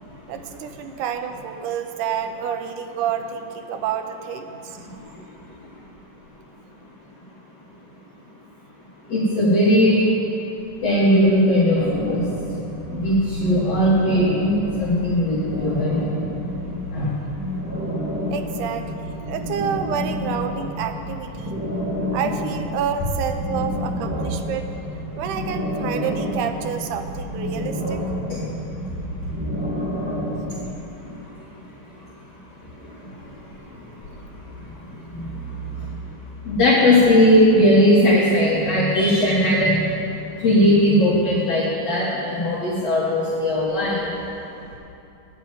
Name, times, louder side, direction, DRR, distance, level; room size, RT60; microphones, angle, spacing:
voice 1, 0.3-4.8 12.1-12.2 18.3-21.6 22.1-24.7 25.2-28.0, right 8 dB, 80° right, 7 dB, 2.1 m, -29 dB
voice 2, 4.8-5.2 9.1-10.0 10.8-12.3 12.6-16.1 16.9-17.1 28.3-28.4 31.0-31.2 32.8-33.8 34.1-34.2 34.5-36.0 36.5-39.8 40.4-44.1, left 1 dB, 55° left, -7 dB, 2.5 m, -19 dB
sound 1, 11.7-30.7, equal, 5° right, 1.0 m, -29 dB
9.6 x 7.5 x 9.1 m, 2.8 s
omnidirectional pair, 3.9 m